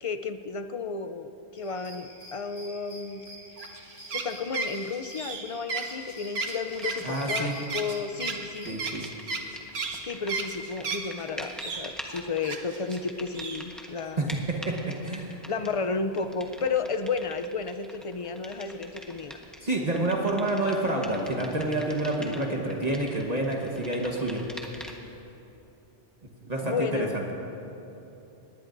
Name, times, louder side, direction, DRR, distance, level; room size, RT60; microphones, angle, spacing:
voice 1, 0.0-3.2 4.1-8.8 10.0-14.3 15.5-19.4 26.6-27.1, left 4 dB, 40° left, 9 dB, 0.5 m, -32 dB
sound 1, 1.6-8.9, equal, 70° left, 2.5 m, -48 dB
sound 2, 3.6-11.2 11.6-13.0 13.3-13.6, right 3 dB, 75° right, 1.2 m, -34 dB
sound 3, 6.5-25.2, equal, ahead, 1.1 m, -45 dB
voice 2, 7.0-7.5 8.6-9.1 14.5-14.7 15.0-15.4 19.6-24.4 26.5-27.2, right 2 dB, 40° right, -1 dB, 1.3 m, -28 dB
20.0 x 19.0 x 2.6 m, 2.9 s
omnidirectional pair, 1.1 m